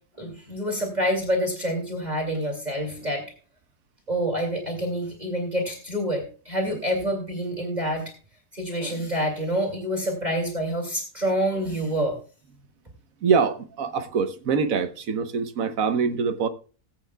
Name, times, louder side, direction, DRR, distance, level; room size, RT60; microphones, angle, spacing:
voice 1, 0.2-3.2 4.1-8.1 8.5-12.2, equal, 25° right, 2.6 m, -27 dB
voice 2, 13.2-16.5, right 5 dB, 60° right, 1.3 m, -24 dB
19.5 x 8.3 x 2.3 m
omnidirectional pair, 1.7 m